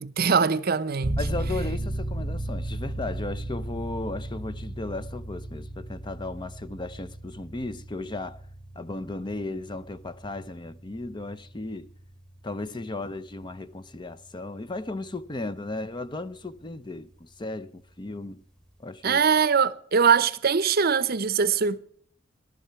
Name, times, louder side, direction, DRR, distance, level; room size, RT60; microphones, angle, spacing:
voice 1, 0.0-1.2 19.0-21.8, right 6 dB, 50° right, 0.7 m, -22 dB
sound 1, 1.0-15.4, right 1 dB, 5° left, 1.3 m, -36 dB
voice 2, 1.2-8.4 8.8-11.9 12.4-18.4 18.8-19.2, left 2 dB, 25° left, 0.5 m, -35 dB
17.5 x 12.0 x 5.7 m
head